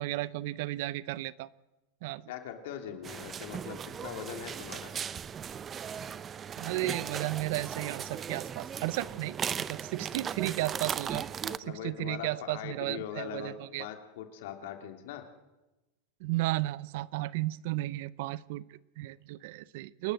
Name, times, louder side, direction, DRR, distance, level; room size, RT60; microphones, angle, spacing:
voice 1, 0.0-1.5 2.0-2.2 6.6-11.3 11.7-13.9 16.2-20.1, right 17 dB, 65° right, 20 dB, 0.6 m, -34 dB
voice 2, 2.3-4.9 11.4-15.3, left 10 dB, 70° left, 6 dB, 2.6 m, -41 dB
sound 1, 3.0-11.6, right 7 dB, 25° right, 0.7 m, -37 dB
28.0 x 12.0 x 7.8 m, 1.0 s
supercardioid pair, 120°, 0 cm